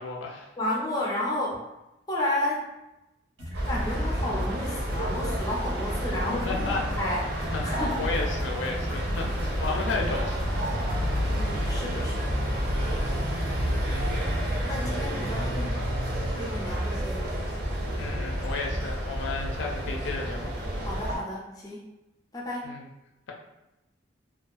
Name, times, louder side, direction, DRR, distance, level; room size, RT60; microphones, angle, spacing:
voice 1, 0.0-0.5 6.3-6.8 7.5-9.3 9.6-10.7 13.2-13.7 18.0-20.5 22.6-22.9, left 3 dB, 80° left, 1 dB, 0.4 m, -33 dB
voice 2, 0.6-1.6 2.1-2.7 3.7-6.6 7.0-8.0 11.3-12.4 14.6-15.8 16.3-17.3 20.8-21.8 22.3-22.7, left 1 dB, 20° left, -3 dB, 0.4 m, -32 dB
sound 1, 3.4-11.4, equal, 85° right, 0.9 m, -43 dB
sound 2, 3.5-21.2, equal, 60° right, 0.5 m, -29 dB
2.3 x 2.2 x 2.5 m, 0.96 s
head